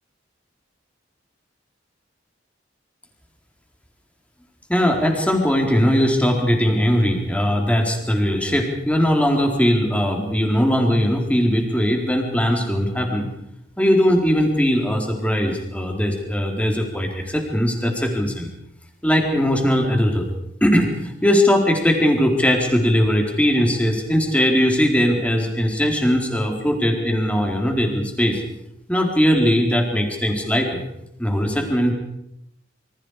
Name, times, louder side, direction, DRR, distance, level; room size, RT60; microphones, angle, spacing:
voice 1, 4.7-13.2 13.8-18.5 19.0-20.3 20.6-28.4 28.9-30.8 31.2-31.9, equal, 5° left, 2 dB, 4.2 m, -19 dB
28.0 x 25.5 x 5.0 m, 0.79 s
head